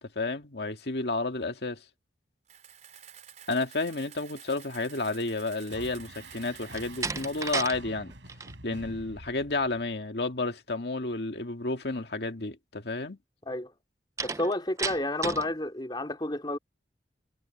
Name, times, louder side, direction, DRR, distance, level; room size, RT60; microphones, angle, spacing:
voice 1, 0.0-1.8 3.5-8.1 8.6-13.2, left 2 dB, 65° left, 2.0 m, -31 dB
Camera, 2.5-7.7, right 9 dB, 40° right, 5.0 m, -50 dB
sound 1, 5.7-10.0, right 1 dB, 80° right, 6.7 m, -48 dB
Slam, 6.7-7.8 8.1-8.6 14.2-15.5, right 4 dB, 15° right, 0.4 m, -33 dB
voice 2, 14.2-16.6, left 1 dB, 25° left, 3.0 m, -30 dB
head